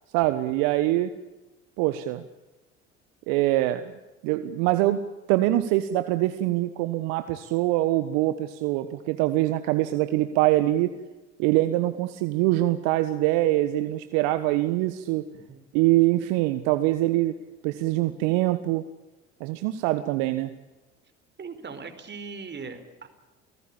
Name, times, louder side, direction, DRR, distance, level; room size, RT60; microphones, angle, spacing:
voice 1, 0.1-1.1 1.8-2.2 3.3-3.8 4.2-5.0 5.3-10.9 11.4-15.2 15.7-17.3 17.6-18.8 19.4-20.5, right 16 dB, 65° right, 11 dB, 1.4 m, -24 dB
voice 2, 21.4-23.1, right 4 dB, 30° right, 8 dB, 4.7 m, -39 dB
29.0 x 18.0 x 8.8 m, 1.1 s
hypercardioid pair, 65°, 35 cm